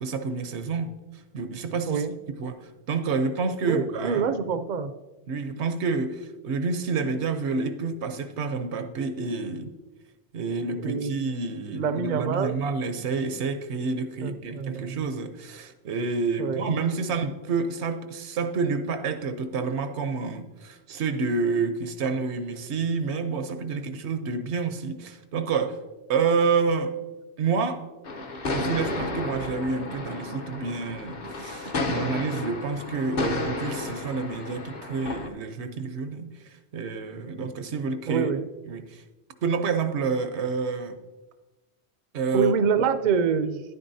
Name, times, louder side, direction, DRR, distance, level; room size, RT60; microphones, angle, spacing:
voice 1, 0.0-2.0 2.4-4.3 5.3-9.7 10.3-25.8 26.1-26.9 27.4-27.8 28.5-38.3 38.7-39.0 39.4-41.0 42.1-42.5, right 4 dB, 80° right, 9 dB, 1.0 m, -28 dB
voice 2, 3.6-4.9 10.8-11.1 11.7-12.6 14.2-15.1 16.4-16.7 38.1-38.5 42.3-43.6, right 6 dB, 55° right, 11 dB, 0.5 m, -26 dB
sound 1, 28.0-35.3, left 2 dB, 45° left, 0.9 m, -32 dB
10.5 x 9.4 x 2.7 m, 1.1 s
omnidirectional pair, 1.1 m